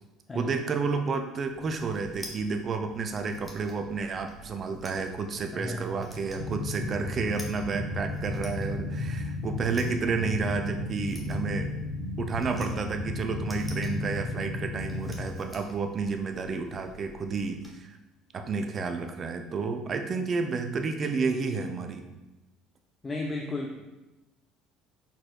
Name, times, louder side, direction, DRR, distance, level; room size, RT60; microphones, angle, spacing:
voice 1, 0.3-11.7 12.2-18.0 18.3-22.1, right 4 dB, 40° right, 6 dB, 0.4 m, -31 dB
sound 1, 1.5-17.7, right 1 dB, ahead, 1.0 m, -50 dB
voice 2, 5.5-6.2 23.0-23.9, left 2 dB, 25° left, 0 dB, 0.4 m, -34 dB
sound 2, 6.3-15.3, left 2 dB, 80° right, 1.2 m, -34 dB
4.3 x 4.1 x 2.2 m, 1.0 s
hypercardioid pair, 60°, 0 cm